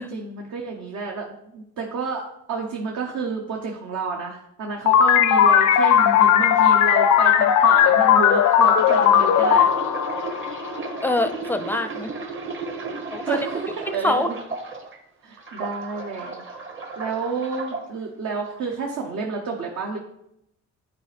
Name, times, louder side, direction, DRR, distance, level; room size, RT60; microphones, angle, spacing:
voice 1, 0.1-9.7 13.2-14.2 15.2-16.4 17.0-20.0, right 4 dB, 65° right, 0 dB, 1.0 m, -30 dB
sound 1, 4.9-11.1, left 9 dB, 70° left, 0.5 m, -17 dB
sound 2, 8.5-15.0 15.4-17.8 18.5-18.7, right 4 dB, 40° right, 1.2 m, -34 dB
voice 2, 11.0-12.1 13.1-13.4 13.9-14.3, left 2 dB, 5° left, 9 dB, 0.5 m, -25 dB
9.4 x 4.2 x 3.4 m, 0.80 s
cardioid pair, 90°, 30 cm